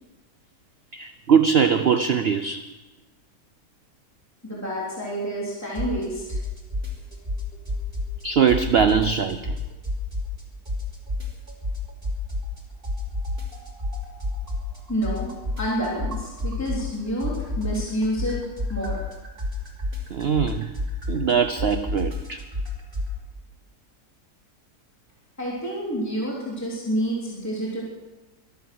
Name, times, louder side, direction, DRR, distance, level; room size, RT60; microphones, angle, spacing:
voice 1, 0.9-2.6 8.2-9.6 20.1-20.7 21.1-22.4, right 7 dB, 60° right, 10 dB, 0.6 m, -21 dB
voice 2, 4.4-6.2 14.9-15.3 15.6-18.4 18.7-19.0 25.4-27.8, equal, 10° left, -6 dB, 3.6 m, -28 dB
sound 1, 5.7-6.0 6.3-8.2 8.5-10.4 10.7-12.6 12.8-16.9 17.2-23.1, left 1 dB, 30° right, 3.0 m, -29 dB
23.0 x 8.6 x 6.2 m, 1.1 s
omnidirectional pair, 1.8 m